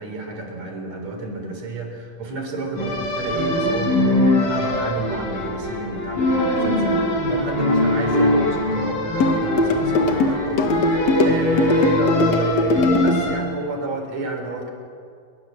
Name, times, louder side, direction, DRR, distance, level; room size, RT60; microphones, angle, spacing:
voice 1, 0.0-14.7, right 3 dB, 50° right, 4 dB, 5.1 m, -30 dB
sound 1, 2.8-13.3, left 1 dB, 80° left, 7.1 m, -22 dB
sound 2, 9.2-13.2, left 3 dB, 50° left, 2.8 m, -20 dB
27.5 x 23.5 x 7.7 m, 2.3 s
omnidirectional pair, 4.1 m